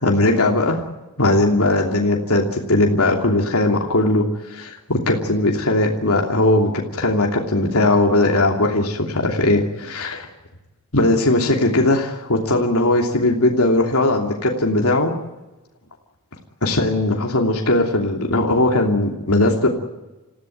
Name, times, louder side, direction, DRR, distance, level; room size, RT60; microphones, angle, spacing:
voice 1, 0.0-0.8 1.2-4.2 4.5-10.3 10.9-15.1 16.6-19.7, left 2 dB, 75° left, 1 dB, 2.9 m, -19 dB
27.0 x 15.5 x 9.2 m, 1.1 s
head